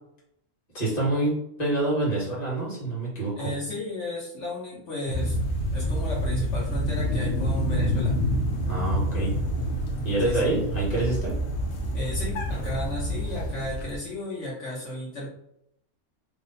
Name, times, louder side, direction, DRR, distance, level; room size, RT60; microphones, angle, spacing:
voice 1, 0.7-3.5 8.7-9.4 10.0-11.3, right 2 dB, 35° left, -6 dB, 1.5 m, -26 dB
voice 2, 3.4-5.4 5.7-8.2 10.2-10.5 11.9-15.3, left 1 dB, 70° left, -7 dB, 1.4 m, -34 dB
sound 1, 5.1-14.0, equal, 90° left, 1.1 m, -27 dB
2.9 x 2.1 x 4.0 m, 0.75 s
omnidirectional pair, 1.3 m